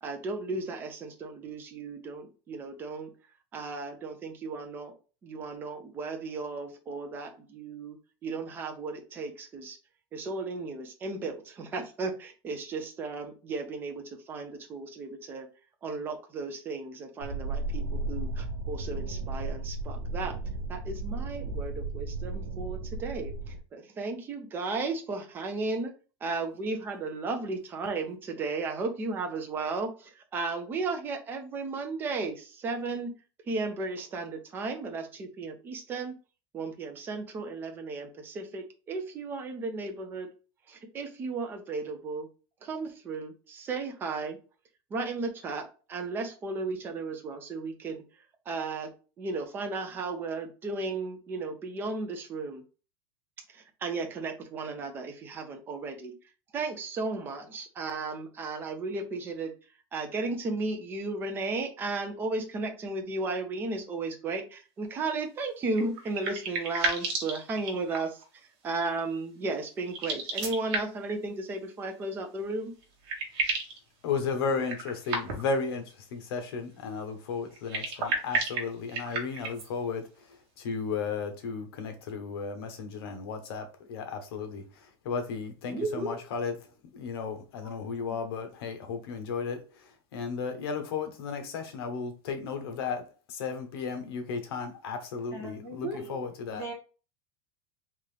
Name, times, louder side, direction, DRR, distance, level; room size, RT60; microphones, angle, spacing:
voice 1, 0.0-3.1 3.5-4.9 5.2-8.0 8.2-9.8 10.1-15.5 15.8-20.3 20.7-25.9 26.2-33.1 33.5-36.1 36.5-40.3 40.7-42.3 42.6-44.4 44.9-48.0 48.5-48.9 49.2-52.6 53.5-56.1 56.5-59.5 59.9-68.2 68.6-72.7 85.7-86.1 95.8-96.1, right 3 dB, 15° right, 0.5 m, -35 dB
sound 1, 17.2-23.6, right 2 dB, 85° right, 0.8 m, -34 dB
sound 2, 65.7-68.2 69.9-71.1 72.5-72.6 72.8-73.8 74.6-75.6 77.5-79.7, right 3 dB, 55° right, 1.3 m, -32 dB
voice 2, 74.0-86.5 86.9-96.6, left 5 dB, 70° left, 1.0 m, -34 dB
voice 3, 95.3-96.1 96.5-96.7, right 2 dB, 20° left, 1.6 m, -41 dB
3.7 x 2.9 x 3.2 m
supercardioid pair, 180°, 13 cm